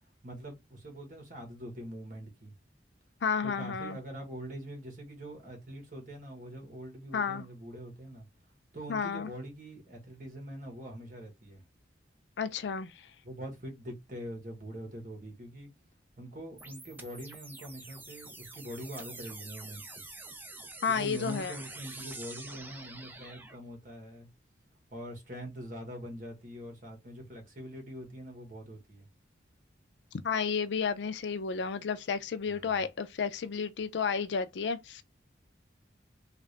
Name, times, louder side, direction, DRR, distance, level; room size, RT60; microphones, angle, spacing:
voice 1, 0.2-2.5 3.4-8.3 8.7-11.6 13.2-15.7 16.2-19.9 20.9-24.3 24.9-29.1 32.4-32.8, equal, 45° right, 1.4 m, -43 dB
voice 2, 3.2-4.0 7.1-7.5 8.9-9.3 12.4-12.9 20.8-21.5 30.2-35.0, left 6 dB, 70° left, 0.4 m, -32 dB
sound 1, 16.6-23.6, right 2 dB, 10° right, 0.5 m, -46 dB
3.5 x 2.5 x 3.2 m
head